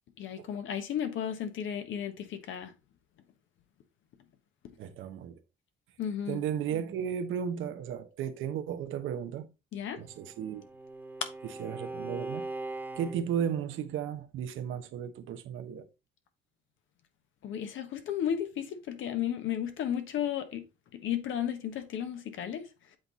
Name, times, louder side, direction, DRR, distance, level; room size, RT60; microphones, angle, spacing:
voice 1, 0.2-2.7 6.0-6.4 9.7-10.0 11.2-11.3 17.4-20.6 20.9-23.0, left 9 dB, 80° left, 1.2 m, -34 dB
voice 2, 4.8-5.4 6.3-9.5 10.0-10.7 11.6-12.4 13.0-15.9, right 8 dB, 80° right, 0.9 m, -34 dB
Bowed string instrument, 9.9-13.5, right 2 dB, 10° right, 1.2 m, -41 dB
7.8 x 4.0 x 4.0 m
cardioid pair, 90°, 20 cm